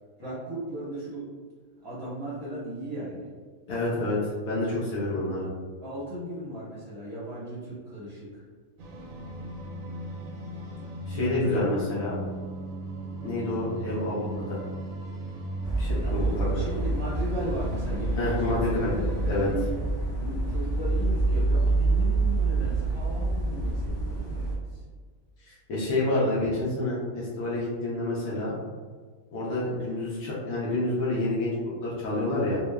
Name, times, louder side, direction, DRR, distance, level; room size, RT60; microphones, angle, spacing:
voice 1, 0.2-1.2 1.8-3.3 5.8-8.4 11.1-11.7 16.0-18.7 19.2-19.8 20.2-24.8, right 1 dB, 25° right, -11 dB, 0.7 m, -36 dB
voice 2, 3.7-5.5 11.1-12.1 13.2-14.6 15.8-16.6 18.2-19.0 19.2-19.5 25.4-28.5 29.3-32.6, left 2 dB, 80° left, -7 dB, 1.0 m, -28 dB
sound 1, 8.8-19.5, right 1 dB, 80° right, 1.0 m, -38 dB
sound 2, 15.6-24.6, right 2 dB, 35° left, 0.6 m, -27 dB
2.9 x 2.1 x 2.2 m, 1.5 s
omnidirectional pair, 1.4 m